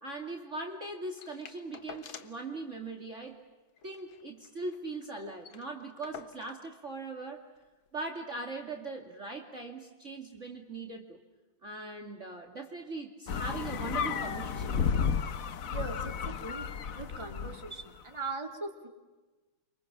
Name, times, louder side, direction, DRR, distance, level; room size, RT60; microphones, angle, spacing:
voice 1, 0.0-3.4 3.8-7.4 7.9-11.2 11.6-15.1, right 3 dB, 35° right, 3 dB, 2.7 m, -40 dB
sound 1, 1.2-2.5 2.8-2.9 3.2-3.4 3.8-4.9 5.1-5.2 5.4-6.7 7.6-7.7, left 8 dB, 65° left, 2.0 m, -49 dB
sound 2, 13.3-17.8, left 6 dB, 50° left, 1.1 m, -32 dB
voice 2, 15.7-16.7 16.9-18.9, right 3 dB, 15° right, 3 dB, 2.9 m, -40 dB
29.5 x 26.0 x 7.4 m, 1.2 s
omnidirectional pair, 2.4 m